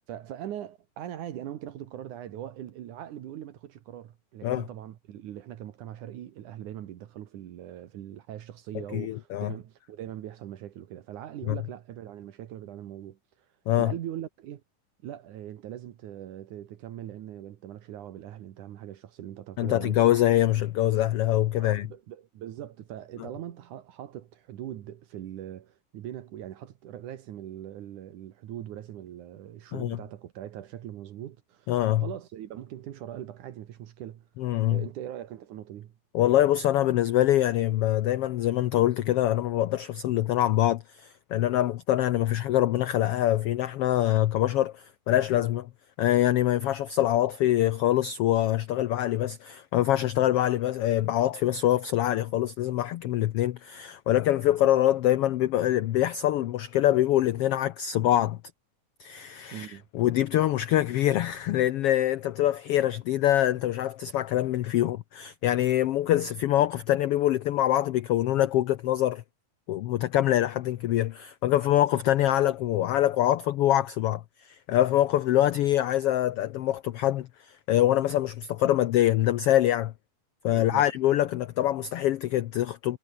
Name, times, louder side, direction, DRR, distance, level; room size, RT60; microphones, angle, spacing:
voice 1, 0.0-13.2 13.7-14.6 15.0-20.0 21.6-34.3 34.7-35.9 59.5-59.9 80.5-80.9, right 11 dB, 75° right, 2.8 m, -41 dB
voice 2, 8.9-9.5 11.5-11.6 13.7-13.9 19.6-21.9 23.2-23.3 29.7-30.0 31.7-32.1 34.4-34.8 36.1-45.7 46.0-58.4 59.0-69.2 69.7-79.9 80.4-83.0, left 13 dB, 90° left, 1.3 m, -24 dB
omnidirectional pair, 3.6 m